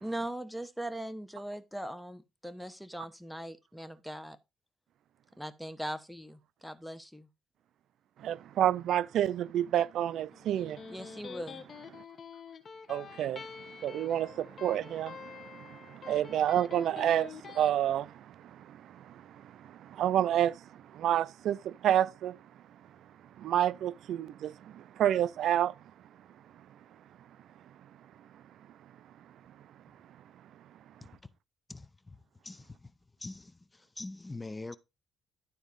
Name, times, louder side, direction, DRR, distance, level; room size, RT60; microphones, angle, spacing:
voice 1, 0.0-4.4 5.4-7.3 10.9-11.6, right 1 dB, ahead, 1.1 m, -40 dB
voice 2, 8.2-10.8 12.9-13.4 13.8-22.4 23.4-25.7, right 11 dB, 75° right, 0.4 m, -29 dB
Electric guitar, 10.3-17.7, left 6 dB, 50° left, 1.3 m, -47 dB
voice 3, 31.7-32.2 32.4-32.9 33.2-34.8, left 2 dB, 20° left, 0.7 m, -43 dB
11.5 x 4.0 x 5.2 m
cardioid pair, 90°, 0 cm